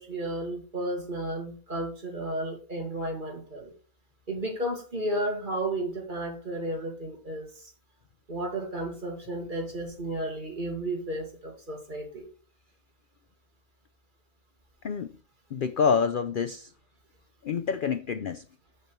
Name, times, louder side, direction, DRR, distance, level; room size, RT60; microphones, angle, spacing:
voice 1, 0.0-3.7 4.3-7.5 8.3-12.3, right 1 dB, 35° right, 2.1 m, -33 dB
voice 2, 15.5-16.7 17.4-18.4, left 6 dB, 65° left, 0.5 m, -27 dB
7.6 x 6.5 x 4.5 m
omnidirectional pair, 1.5 m